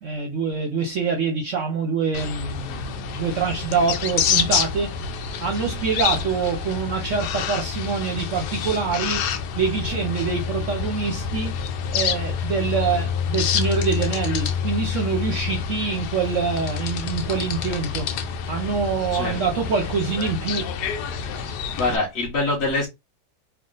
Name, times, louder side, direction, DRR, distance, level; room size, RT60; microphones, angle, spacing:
voice 1, 0.0-5.0 5.4-9.3 9.6-11.5 11.9-18.1 18.5-20.7, right 5 dB, 60° right, 0.8 m, -25 dB
sound 1, 2.1-22.0, left 7 dB, 75° left, 1.2 m, -27 dB
voice 2, 21.2-22.9, left 2 dB, 45° left, 1.2 m, -25 dB
3.6 x 2.3 x 3.7 m
omnidirectional pair, 1.8 m